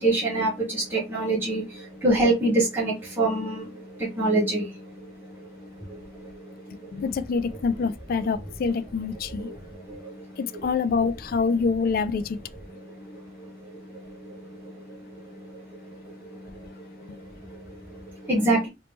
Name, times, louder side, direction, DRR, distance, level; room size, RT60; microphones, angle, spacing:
voice 1, 0.0-6.9 9.4-10.3 12.8-18.7, right 2 dB, 10° right, 1.3 m, -28 dB
voice 2, 6.9-9.5 10.4-12.4, left 5 dB, 55° left, 0.3 m, -26 dB
3.0 x 2.9 x 3.4 m
head